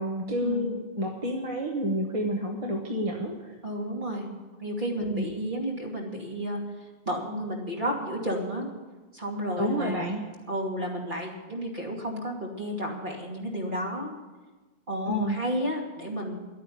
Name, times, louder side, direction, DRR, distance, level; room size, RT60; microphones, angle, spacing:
voice 1, 0.0-3.5 5.0-5.3 9.6-10.2 15.1-15.3, equal, 35° right, 1 dB, 1.2 m, -29 dB
voice 2, 3.6-4.3 4.6-6.6 7.1-8.7 9.1-10.1 10.5-14.1 14.9-16.4, equal, 50° right, -1 dB, 2.8 m, -32 dB
11.5 x 9.2 x 9.3 m, 1.2 s
omnidirectional pair, 1.1 m